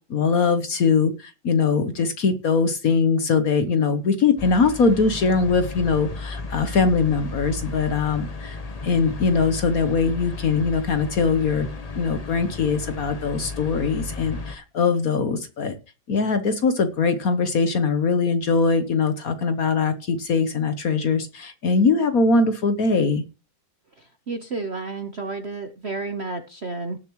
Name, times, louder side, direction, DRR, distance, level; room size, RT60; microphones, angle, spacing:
voice 1, 0.1-8.6 8.8-11.7 12.0-15.7 16.1-23.2, left 4 dB, 55° left, 10 dB, 1.2 m, -21 dB
sound 1, 4.4-14.5, left 3 dB, 35° left, 0.6 m, -34 dB
voice 2, 24.0-27.0, right 3 dB, 45° right, 7 dB, 0.8 m, -31 dB
18.5 x 7.0 x 3.0 m, 0.31 s
omnidirectional pair, 2.2 m